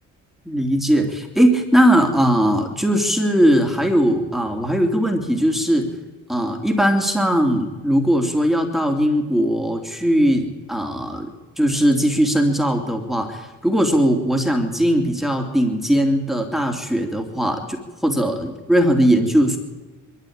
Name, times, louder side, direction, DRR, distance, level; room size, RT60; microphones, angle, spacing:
voice 1, 0.4-5.9 6.3-11.3 11.6-19.6, equal, ahead, 3 dB, 3.1 m, -19 dB
22.0 x 13.5 x 8.9 m, 1.2 s
cardioid pair, 90°, 30 cm